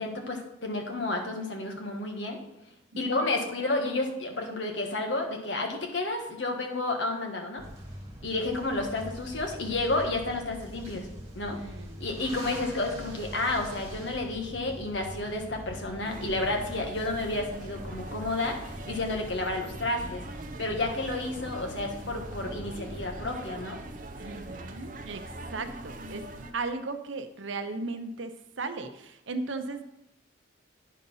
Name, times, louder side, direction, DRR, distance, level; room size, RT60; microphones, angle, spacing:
voice 1, 0.0-2.4 3.0-7.6 8.2-11.1 11.3-11.6 12.0-20.2 20.6-23.8, left 2 dB, 70° left, 3 dB, 1.5 m, -31 dB
voice 2, 2.9-3.3 8.3-8.6 11.5-12.0 24.1-26.2 26.5-29.8, right 3 dB, 75° right, 8 dB, 0.8 m, -37 dB
sound 1, 7.6-23.3, equal, 15° right, 1.8 m, -43 dB
sound 2, 16.0-26.5, right 2 dB, 45° right, 0.7 m, -42 dB
10.0 x 4.0 x 5.5 m, 0.89 s
head